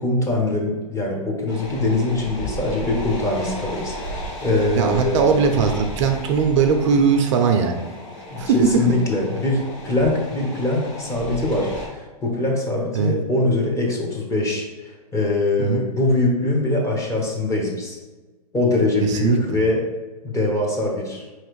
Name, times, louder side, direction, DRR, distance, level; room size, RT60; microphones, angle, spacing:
voice 1, 0.0-5.4 8.3-18.0 18.5-19.9 20.2-21.3, left 2 dB, 15° left, -1 dB, 0.9 m, -23 dB
sound 1, 1.5-11.9, equal, 50° left, 1.4 m, -34 dB
voice 2, 4.8-7.8 8.4-8.6 13.0-13.1 15.6-15.8 19.0-19.6, right 6 dB, 50° right, 5 dB, 0.5 m, -19 dB
4.8 x 3.2 x 3.0 m, 1.2 s
hypercardioid pair, 130°, 20 cm